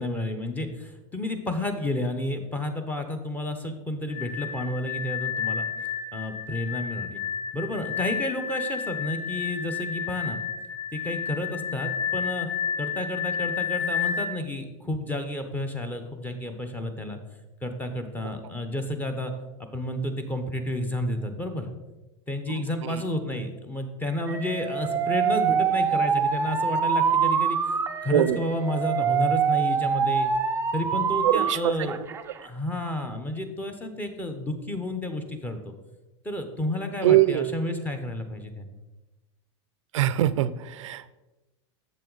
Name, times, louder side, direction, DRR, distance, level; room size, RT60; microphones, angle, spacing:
voice 1, 0.0-5.7 6.1-7.2 7.5-10.4 10.9-12.5 12.8-17.2 17.6-19.3 19.7-21.7 22.3-30.3 30.7-32.0 32.4-35.7 36.2-38.7, left 1 dB, 10° left, 7 dB, 0.8 m, -31 dB
sound 1, 4.1-14.3, left 7 dB, 50° left, 1.3 m, -31 dB
Alarm, 24.3-31.5 31.9-32.4, right 7 dB, 15° right, 0.4 m, -25 dB
voice 2, 31.2-31.9 37.0-37.5 39.9-41.0, right 13 dB, 90° right, 15 dB, 0.4 m, -23 dB
7.5 x 7.1 x 4.0 m, 1.1 s
supercardioid pair, 140°, 16 cm